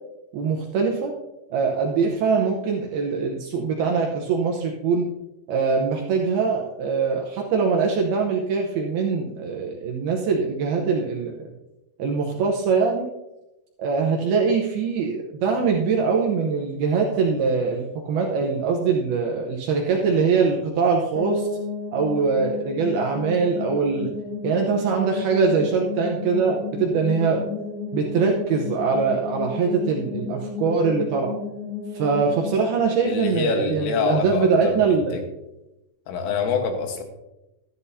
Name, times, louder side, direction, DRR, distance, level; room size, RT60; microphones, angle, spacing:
voice 1, 0.3-1.1 1.5-5.1 5.5-11.5 12.0-13.1 13.8-21.5 21.9-24.1 24.4-27.4 27.9-31.3 31.9-35.2, right 5 dB, 85° right, 0 dB, 2.2 m, -23 dB
sound 1, 21.1-34.0, left 5 dB, 20° left, 3.1 m, -33 dB
voice 2, 33.0-34.8 35.1-35.2 36.1-37.0, left 5 dB, 85° left, 4 dB, 3.9 m, -25 dB
13.0 x 11.5 x 2.7 m, 0.95 s
omnidirectional pair, 5.7 m